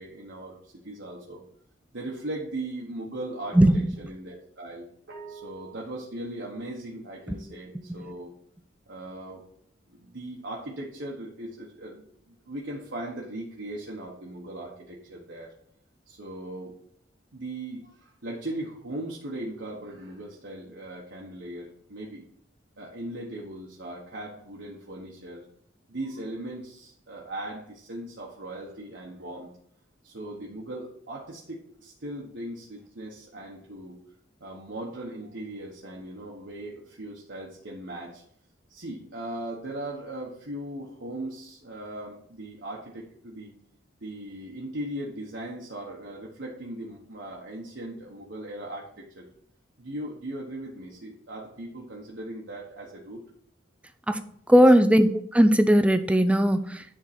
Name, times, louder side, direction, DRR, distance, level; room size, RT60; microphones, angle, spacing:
voice 1, 0.0-1.4 1.9-8.3 8.9-9.4 9.9-15.6 16.1-16.7 17.3-22.2 22.8-25.4 25.9-29.5 30.0-34.0 34.4-38.2 38.7-43.6 44.0-49.3 49.8-53.2 54.5-54.6, right 1 dB, 70° right, -3 dB, 1.2 m, -38 dB
voice 2, 54.5-56.8, equal, 5° right, 9 dB, 0.4 m, -18 dB
10.0 x 3.7 x 4.3 m, 0.67 s
head